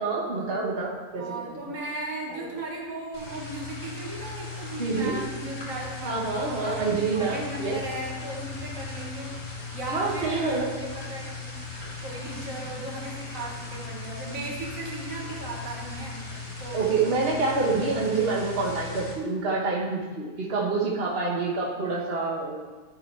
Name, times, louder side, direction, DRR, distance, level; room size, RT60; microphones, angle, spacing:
voice 1, 0.0-1.5 2.3-2.4 4.8-5.2 6.0-7.8 9.9-10.8 16.7-22.6, right 4 dB, 45° right, -3 dB, 1.5 m, -27 dB
voice 2, 1.2-9.4 9.7-11.6 12.0-16.3 16.6-17.0, right 2 dB, 65° right, -2 dB, 1.9 m, -36 dB
sound 1, 3.1-19.1, left 3 dB, 80° left, 2.7 m, -38 dB
11.5 x 4.9 x 4.6 m, 1.4 s
omnidirectional pair, 1.5 m